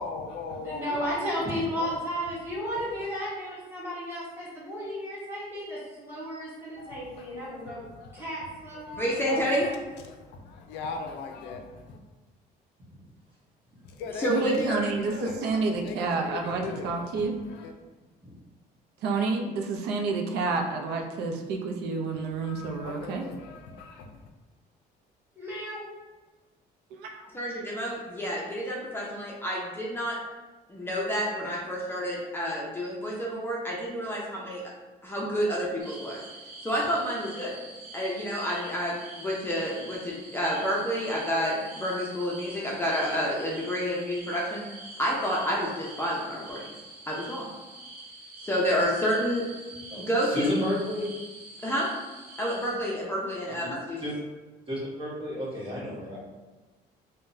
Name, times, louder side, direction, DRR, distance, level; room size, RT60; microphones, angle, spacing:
voice 1, 0.0-1.9 2.7-3.1 6.8-8.3 8.7-12.0 13.8-17.7 22.1-24.3, left 4 dB, 90° left, 4 dB, 0.4 m, -40 dB
voice 2, 0.6-7.8 8.1-9.2 25.3-25.8 31.4-31.5 52.4-52.5, equal, 15° right, -9 dB, 1.3 m, -34 dB
voice 3, 9.0-9.7 14.2-14.8 27.3-30.2 30.7-34.6 35.0-36.2 36.6-37.5 37.9-44.6 45.0-46.6 47.1-47.5 48.4-49.4 50.0-50.5 51.6-51.9 52.4-54.0, equal, 15° left, -5 dB, 0.5 m, -29 dB
voice 4, 14.3-17.3 19.0-23.2 26.9-27.3, right 4 dB, 80° right, 3 dB, 0.5 m, -29 dB
sound 1, 35.8-52.7, right 2 dB, 55° right, 0.9 m, -45 dB
voice 5, 49.9-51.1 53.5-54.1 54.7-56.2, left 1 dB, 30° right, -6 dB, 1.2 m, -32 dB
3.6 x 2.2 x 2.6 m, 1.2 s
cardioid pair, 110°, 17 cm